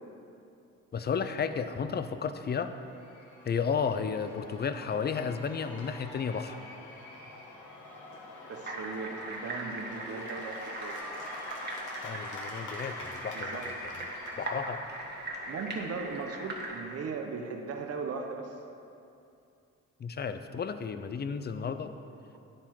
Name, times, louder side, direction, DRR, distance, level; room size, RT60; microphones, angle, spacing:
voice 1, 0.9-2.7 3.4-6.6 12.0-13.7 14.0-14.8 20.0-21.9, left 6 dB, 35° left, 10 dB, 0.6 m, -33 dB
Cheering / Applause / Crowd, 2.4-17.1, left 2 dB, 75° left, 1.5 m, -46 dB
voice 2, 8.5-11.0 13.3-13.7 15.5-18.6, right 4 dB, 55° right, 4 dB, 0.9 m, -38 dB
sound 1, 8.7-16.8, right 2 dB, 35° right, 1.4 m, -40 dB
10.0 x 7.6 x 4.7 m, 2.6 s
cardioid pair, 90°, 30 cm